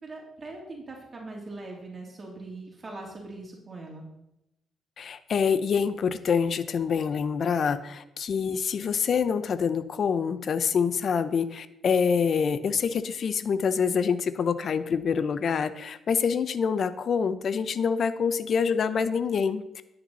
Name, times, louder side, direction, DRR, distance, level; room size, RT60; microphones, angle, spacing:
voice 1, 0.0-4.1 18.8-19.1, right 2 dB, 35° right, -1 dB, 2.9 m, -41 dB
voice 2, 5.0-19.6, left 6 dB, 55° left, 13 dB, 0.7 m, -26 dB
11.0 x 8.8 x 4.1 m, 0.85 s
cardioid pair, 90°, 0 cm